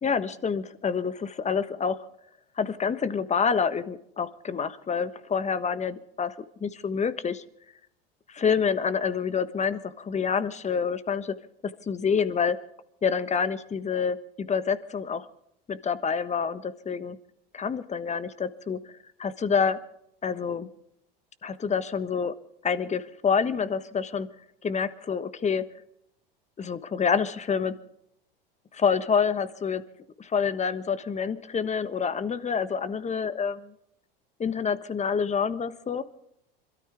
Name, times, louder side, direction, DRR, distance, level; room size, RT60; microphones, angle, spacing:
voice 1, 0.0-2.0 2.6-7.4 8.3-11.3 11.9-12.6 13.0-15.3 15.7-17.2 17.5-18.8 19.2-19.8 20.2-20.7 21.4-22.3 22.6-24.3 24.6-25.6 26.6-27.8 28.7-29.8 30.2-33.7 34.4-36.0, left 6 dB, 25° left, 13 dB, 1.3 m, -27 dB
26.5 x 13.0 x 3.5 m, 0.75 s
hypercardioid pair, 80°, 29 cm